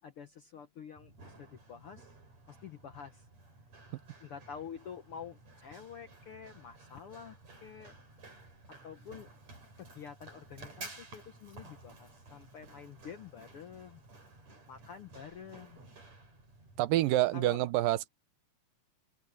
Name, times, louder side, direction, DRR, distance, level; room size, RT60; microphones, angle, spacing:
voice 1, 0.0-2.1 2.5-3.3 4.2-7.4 7.6-8.2 8.8-9.3 9.8-14.0 14.7-15.8 17.3-17.6, left 7 dB, 65° left, 1.4 m, -48 dB
Run, 1.0-17.0, right 2 dB, 50° right, 8.4 m, -54 dB
voice 2, 16.8-18.1, right 16 dB, 85° right, 2.5 m, -27 dB
omnidirectional pair, 3.9 m